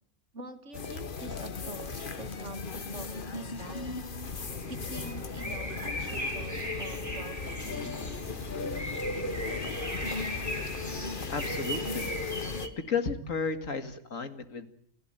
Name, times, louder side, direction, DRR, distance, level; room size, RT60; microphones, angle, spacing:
voice 1, 0.3-4.1 4.7-8.0, right 2 dB, 60° right, 6 dB, 2.5 m, -45 dB
sound 1, 0.7-12.7, left 4 dB, 40° left, 1.3 m, -37 dB
sound 2, 4.3-12.7, equal, 10° left, 3.6 m, -37 dB
voice 2, 11.3-12.5 12.9-14.7, left 5 dB, 80° left, 8 dB, 2.4 m, -33 dB
30.0 x 16.0 x 9.2 m, 0.70 s
omnidirectional pair, 1.4 m